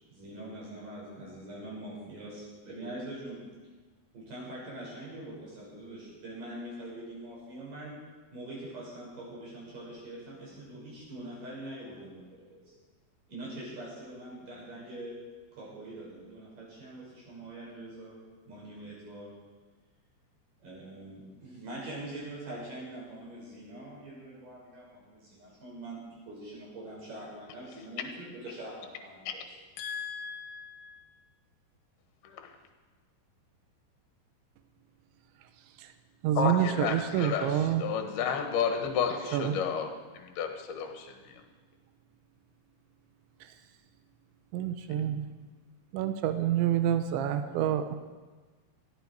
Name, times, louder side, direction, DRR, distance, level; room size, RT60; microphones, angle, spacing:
voice 1, 0.1-3.4 4.1-7.9 8.3-12.7 13.3-15.2 15.5-18.2 18.5-19.3 20.6-29.4, right 1 dB, 45° right, -5 dB, 7.4 m, -43 dB
voice 2, 29.8-31.0 32.2-32.5 36.4-41.4, left 6 dB, 70° left, 5 dB, 3.1 m, -32 dB
voice 3, 36.2-37.8 39.3-39.5 44.5-45.3 45.9-47.8, right 10 dB, 85° right, 9 dB, 3.2 m, -27 dB
18.5 x 14.5 x 4.7 m, 1.4 s
omnidirectional pair, 5.2 m